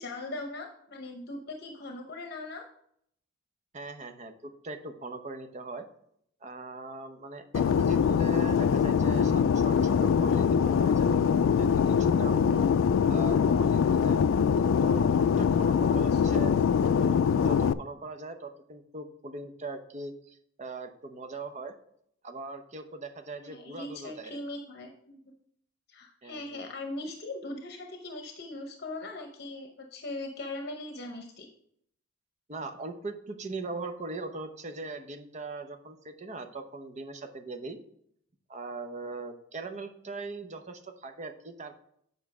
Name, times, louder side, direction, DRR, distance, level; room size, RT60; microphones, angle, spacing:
voice 1, 0.0-2.6 16.0-16.3 23.4-25.3 25.9-31.5, left 2 dB, 55° left, 3 dB, 0.8 m, -40 dB
voice 2, 3.7-5.9 6.4-11.1 11.5-12.6 13.1-14.2 14.8-16.6 17.0-21.7 22.2-24.4 26.2-26.7 32.5-37.8 38.5-41.8, right 3 dB, 35° right, 7 dB, 0.8 m, -40 dB
Fixed-wing aircraft airplane, 7.5-17.7, left 7 dB, 80° left, 0.3 m, -23 dB
8.1 x 5.4 x 4.8 m, 0.70 s
head